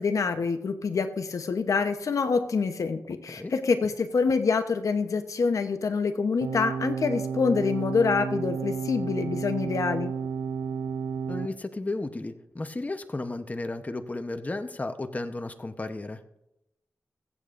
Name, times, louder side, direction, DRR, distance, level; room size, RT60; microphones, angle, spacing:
voice 1, 0.0-10.1, left 5 dB, 65° left, 7 dB, 0.8 m, -26 dB
sound 1, 6.4-11.5, right 6 dB, 85° right, 0.5 m, -32 dB
voice 2, 11.3-16.2, left 2 dB, 25° left, 8 dB, 0.8 m, -34 dB
22.5 x 8.2 x 2.5 m, 0.87 s
cardioid pair, 70°, 6 cm